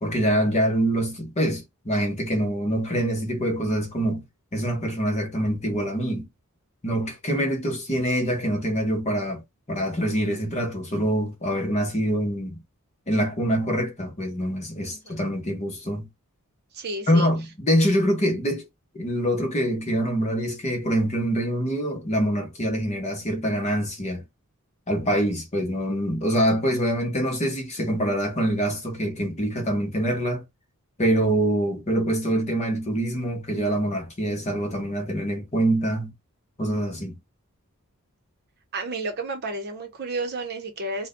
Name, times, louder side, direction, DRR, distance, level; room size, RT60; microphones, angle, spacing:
voice 1, 0.0-4.2 4.5-6.3 6.8-9.4 9.7-12.6 13.1-16.1 17.1-18.7 18.9-24.2 24.9-30.4 31.0-36.1 36.6-37.2, equal, 30° left, 0.8 m, -25 dB
voice 2, 14.9-15.2 16.7-17.3 38.7-41.1, right 2 dB, 45° right, 0.7 m, -31 dB
2.4 x 2.1 x 3.6 m
head